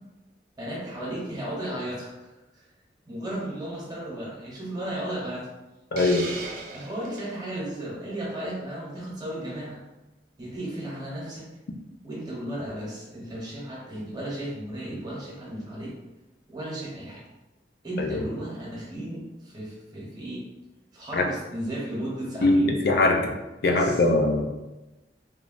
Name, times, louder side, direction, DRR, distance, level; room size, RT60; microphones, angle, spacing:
voice 1, 0.6-2.6 3.1-5.5 6.7-9.8 10.4-11.5 12.0-15.9 16.5-17.2 17.8-20.4 20.9-22.7 23.6-24.0, right 1 dB, 25° right, -5 dB, 0.9 m, -34 dB
voice 2, 5.9-6.3 18.0-18.2 21.1-21.2 22.4-23.3 23.6-24.4, left 2 dB, 60° left, 3 dB, 0.4 m, -21 dB
Hiss, 6.0-7.3, right 3 dB, 50° right, 0.5 m, -37 dB
3.1 x 2.3 x 2.5 m, 1.0 s
head